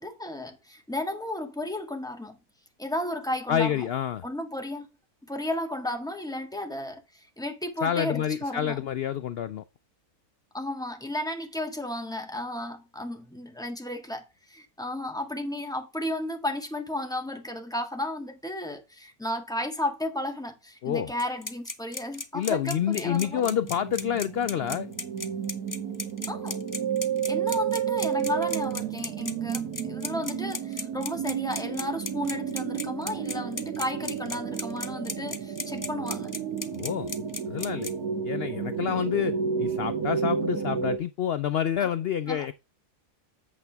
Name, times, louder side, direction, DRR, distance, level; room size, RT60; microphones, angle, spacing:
voice 1, 0.0-2.4 2.8-3.9 4.2-4.9 5.2-7.0 7.4-8.8 10.5-23.5 26.3-26.6 27.3-36.3 41.8-41.9 42.3-42.5, left 1 dB, 5° left, 1.7 m, -33 dB
voice 2, 3.5-4.2 7.8-9.6 20.8-21.1 22.3-24.9 36.7-37.1 37.5-37.9 38.2-42.5, left 9 dB, 70° left, 0.5 m, -28 dB
sound 1, 21.2-37.9, left 3 dB, 25° left, 0.4 m, -35 dB
sound 2, 22.7-41.0, right 7 dB, 80° right, 1.9 m, -32 dB
8.7 x 7.0 x 3.5 m
omnidirectional pair, 1.6 m